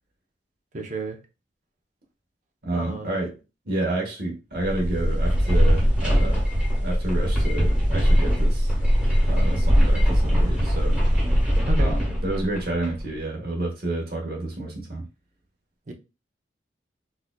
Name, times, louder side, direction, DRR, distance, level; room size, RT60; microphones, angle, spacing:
voice 1, 0.7-1.2 2.7-3.2 11.7-11.9 15.9-16.0, right 2 dB, 45° right, 0.6 m, -32 dB
voice 2, 2.6-3.3 3.6-6.4 6.8-8.7 9.2-11.0 11.8-15.0, right 2 dB, 60° right, 1.0 m, -29 dB
sound 1, 4.5-13.1, equal, 5° right, 1.2 m, -21 dB
4.2 x 2.5 x 2.2 m
head